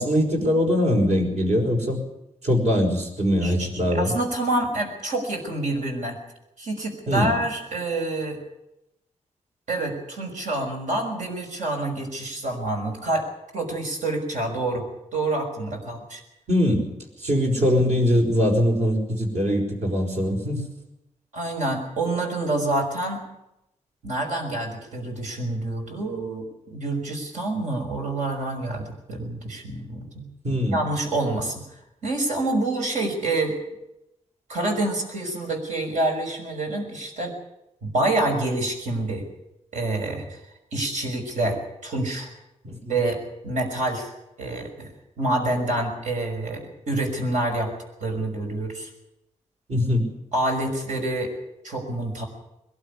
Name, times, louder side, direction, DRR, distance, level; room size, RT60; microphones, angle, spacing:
voice 1, 0.0-2.0 2.4-4.1 7.1-7.3 16.5-16.8 17.2-20.6 30.4-30.8 42.9-43.0 49.7-50.1, equal, 65° right, 2 dB, 5.5 m, -22 dB
voice 2, 3.4-6.2 6.6-8.4 9.7-13.3 13.5-14.8 15.1-16.2 21.3-23.2 24.0-30.3 30.7-31.6 32.0-33.5 34.5-37.3 37.8-39.2 39.7-40.4 40.7-42.3 42.9-44.9 45.2-47.7 48.0-48.9 50.3-51.3 51.6-52.2, right 2 dB, 80° right, 3 dB, 5.7 m, -27 dB
21.5 x 12.5 x 9.9 m, 0.88 s
wide cardioid pair, 130°, 12 cm